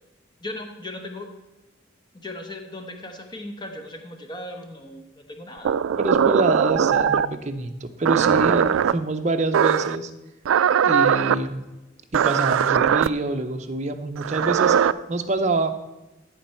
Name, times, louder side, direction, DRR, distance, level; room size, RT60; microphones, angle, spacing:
voice 1, 0.4-1.3 2.1-5.8, left 1 dB, 20° left, 5 dB, 1.0 m, -37 dB
sound 1, 5.6-7.3 8.0-8.9 9.5-10.0 10.4-11.4 12.1-13.1 14.2-14.9, right 8 dB, 85° right, 0.3 m, -20 dB
voice 2, 6.0-10.1 10.8-11.6 12.1-14.8 15.1-15.7, right 2 dB, 35° right, 6 dB, 0.6 m, -26 dB
15.0 x 5.2 x 4.4 m, 1.1 s
head